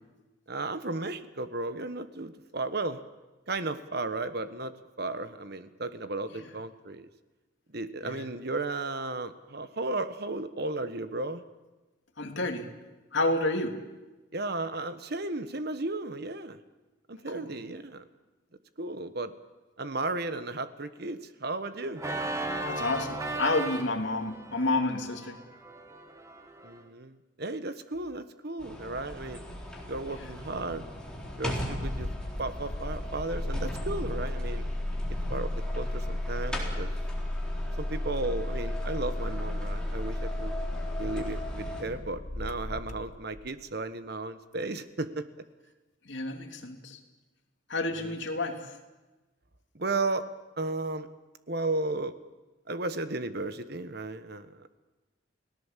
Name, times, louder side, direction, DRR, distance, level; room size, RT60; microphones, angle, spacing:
voice 1, 0.5-3.0 3.5-7.1 7.7-11.4 14.3-16.6 17.1-18.0 18.8-19.3 19.8-22.0 26.6-29.4 29.9-30.8 31.4-32.1 32.4-34.7 35.3-36.9 37.8-40.6 41.0-45.3 47.9-48.2 49.7-50.3 50.6-51.1 51.5-52.2 52.7-54.7, right 2 dB, 50° right, 11 dB, 1.2 m, -34 dB
voice 2, 12.2-12.7 13.1-13.8 17.3-17.5 22.7-25.4 30.1-30.3 46.0-47.0 47.7-48.8, left 2 dB, 65° left, 3 dB, 2.9 m, -30 dB
Organ, 22.0-26.8, right 2 dB, 15° right, 1.6 m, -36 dB
sound 1, 28.6-41.8, equal, 5° left, 4.0 m, -39 dB
Engine starting, 29.5-43.6, left 1 dB, 35° left, 0.9 m, -34 dB
30.0 x 18.0 x 7.5 m, 1.1 s
head